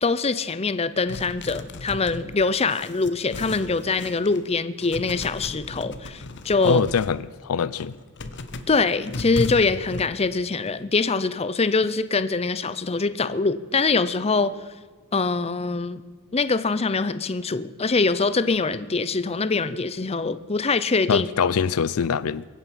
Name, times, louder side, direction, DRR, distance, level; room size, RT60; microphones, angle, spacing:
voice 1, 0.0-6.8 8.7-14.5 15.1-16.0 16.3-21.5, left 4 dB, 30° left, 0.6 m, -24 dB
sound 1, 1.1-4.5 4.8-7.2 7.6-10.0, left 2 dB, 55° left, 1.1 m, -35 dB
voice 2, 6.6-7.9 21.1-22.4, left 6 dB, 80° left, 0.5 m, -23 dB
22.5 x 9.2 x 6.1 m
head